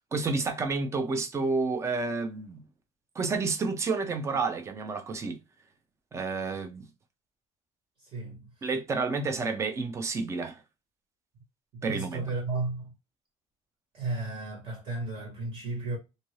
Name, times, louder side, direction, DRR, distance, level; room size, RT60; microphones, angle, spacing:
voice 1, 0.1-2.6 3.2-5.4 6.1-6.9 8.6-10.6 11.8-12.2, right 4 dB, 20° right, 0.5 m, -30 dB
voice 2, 8.0-8.7 11.7-12.9 13.9-16.0, right 3 dB, 45° right, 1.5 m, -34 dB
2.7 x 2.5 x 3.1 m
cardioid pair, 160°, 13 cm